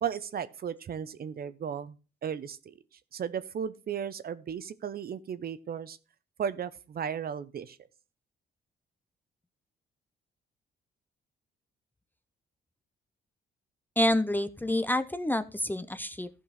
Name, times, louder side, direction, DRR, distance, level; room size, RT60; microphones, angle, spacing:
voice 1, 0.0-2.0 2.2-2.7 3.1-6.0 6.4-7.8, right 8 dB, 50° right, 14 dB, 0.8 m, -35 dB
voice 2, 14.0-16.3, left 1 dB, 10° left, 12 dB, 0.6 m, -28 dB
14.0 x 5.4 x 4.0 m, 0.32 s
cardioid pair, 90°, 20 cm